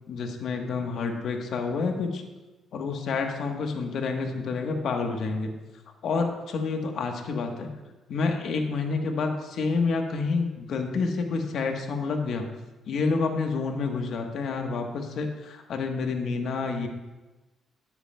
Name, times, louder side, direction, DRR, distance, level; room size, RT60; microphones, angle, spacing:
voice 1, 0.1-2.2 2.7-5.5 6.0-7.7 8.1-12.5 12.9-16.9, left 4 dB, 70° left, 4 dB, 1.2 m, -28 dB
12.5 x 9.6 x 2.3 m, 1.1 s
cardioid pair, 90°, 0 cm